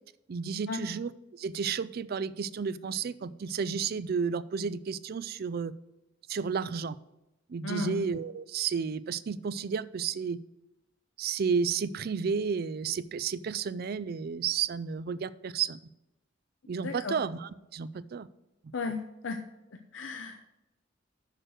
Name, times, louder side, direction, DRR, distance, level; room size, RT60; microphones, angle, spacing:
voice 1, 0.3-5.7 6.3-6.9 7.5-10.4 11.2-15.8 16.7-18.3, right 6 dB, 50° right, 16 dB, 0.4 m, -32 dB
voice 2, 7.6-8.0 16.8-17.2 18.7-19.4 19.7-20.5, left 3 dB, 75° left, 5 dB, 0.6 m, -35 dB
6.7 x 6.5 x 6.2 m, 0.95 s
head